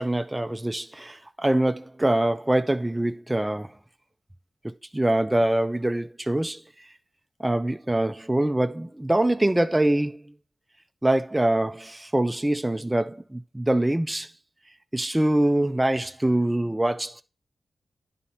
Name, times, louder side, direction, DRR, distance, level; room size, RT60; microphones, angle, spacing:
voice 1, 0.0-3.7 4.9-6.6 7.4-10.3 11.0-14.3 14.9-17.2, right 1 dB, 15° right, 0.5 m, -24 dB
9.8 x 4.3 x 4.1 m
cardioid pair, 50°, 0 cm